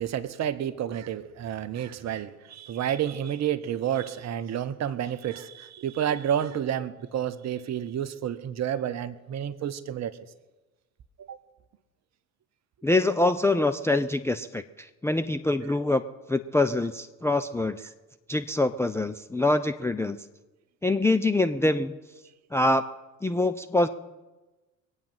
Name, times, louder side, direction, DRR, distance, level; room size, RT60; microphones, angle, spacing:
voice 1, 0.0-10.2 11.2-11.4, right 10 dB, 40° right, 16 dB, 1.0 m, -30 dB
voice 2, 12.8-16.0 16.3-17.9 18.3-20.3 20.8-22.0 22.5-22.8 23.2-23.9, left 2 dB, 5° left, 10 dB, 0.5 m, -25 dB
23.5 x 8.8 x 5.8 m, 1.1 s
figure-of-eight pair, 60°, 42 cm